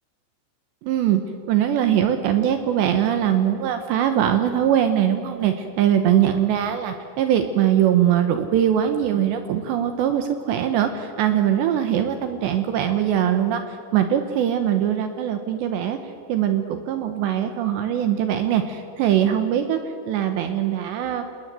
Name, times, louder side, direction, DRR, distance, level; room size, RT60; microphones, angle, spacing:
voice 1, 0.8-1.2 1.5-13.6 13.9-16.0 16.3-19.8 20.1-21.2, right 10 dB, 70° right, 7 dB, 3.0 m, -21 dB
28.0 x 20.0 x 7.6 m, 2.5 s
omnidirectional pair, 5.8 m